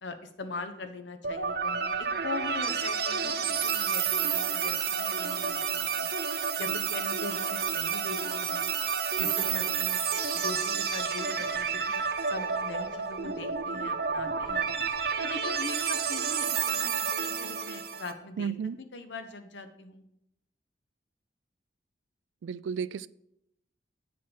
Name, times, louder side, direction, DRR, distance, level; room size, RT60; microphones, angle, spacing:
voice 1, 0.0-6.1 6.6-8.7 9.2-10.0 10.3-14.7 15.2-20.0, left 3 dB, 80° left, 0.9 m, -41 dB
sound 1, 1.2-18.1, right 6 dB, 55° right, 0.8 m, -30 dB
voice 2, 18.4-18.8 22.4-23.1, right 7 dB, 90° right, 0.3 m, -33 dB
8.4 x 4.6 x 5.6 m
head